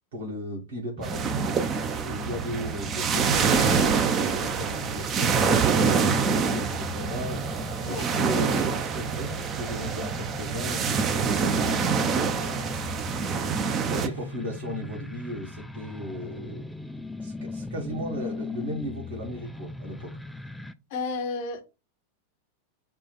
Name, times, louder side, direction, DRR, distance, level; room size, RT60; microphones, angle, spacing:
voice 1, 0.1-12.6 13.5-16.6 17.2-20.1, equal, 60° right, 1.8 m, -36 dB
sound 1, 1.0-20.7, left 2 dB, 5° left, 0.4 m, -39 dB
sound 2, 1.0-14.1, right 6 dB, 30° right, 0.7 m, -26 dB
sound 3, 3.0-14.3, right 2 dB, 80° right, 1.0 m, -41 dB
voice 2, 20.9-21.6, left 4 dB, 50° left, 1.0 m, -31 dB
4.4 x 2.4 x 4.2 m
figure-of-eight pair, 90°, 0 cm